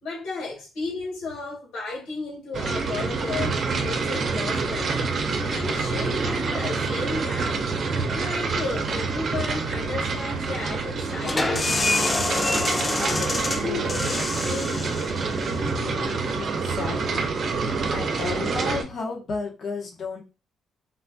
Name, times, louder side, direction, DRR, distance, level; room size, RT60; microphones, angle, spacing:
voice 1, 0.0-5.1 5.5-7.7 8.1-12.4 12.8-14.9, left 3 dB, 80° left, 1.7 m, -34 dB
sound 1, 2.5-18.8, right 4 dB, 55° right, 0.6 m, -27 dB
sound 2, 11.2-16.7, left 2 dB, 25° left, 0.4 m, -28 dB
voice 2, 16.3-17.3 17.9-20.2, left 4 dB, 55° left, 1.0 m, -32 dB
3.9 x 2.4 x 2.2 m
cardioid pair, 90°, 0 cm